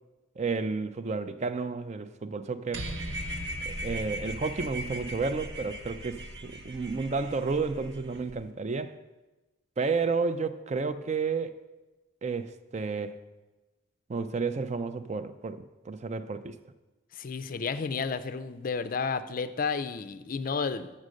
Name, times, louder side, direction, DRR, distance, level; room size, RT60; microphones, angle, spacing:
voice 1, 0.4-2.9 3.7-9.0 9.8-11.6 12.2-13.2 14.1-16.6, right 4 dB, 35° right, 0.4 m, -31 dB
sound 1, 2.7-8.3, right 1 dB, 55° right, 0.8 m, -38 dB
voice 2, 17.1-20.9, left 5 dB, 45° left, 0.4 m, -32 dB
7.4 x 6.4 x 6.3 m
head